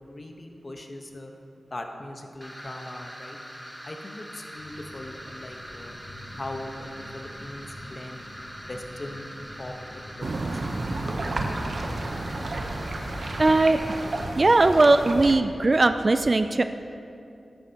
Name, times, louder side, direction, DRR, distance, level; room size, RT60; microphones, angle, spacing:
voice 1, 0.1-1.3 1.7-3.4 3.8-6.0 6.4-8.2 8.6-9.3 9.6-10.9, left 1 dB, 40° left, 4 dB, 1.0 m, -40 dB
sound 1, 2.4-14.2, equal, ahead, 1.2 m, -43 dB
sound 2, 4.6-14.6, left 1 dB, 70° left, 1.3 m, -46 dB
sound 3, 10.2-15.4, right 2 dB, 65° right, 0.8 m, -31 dB
voice 2, 13.4-13.8 14.3-16.6, right 2 dB, 45° right, 9 dB, 0.3 m, -19 dB
13.0 x 10.5 x 2.9 m, 2.7 s
cardioid pair, 55°, 0 cm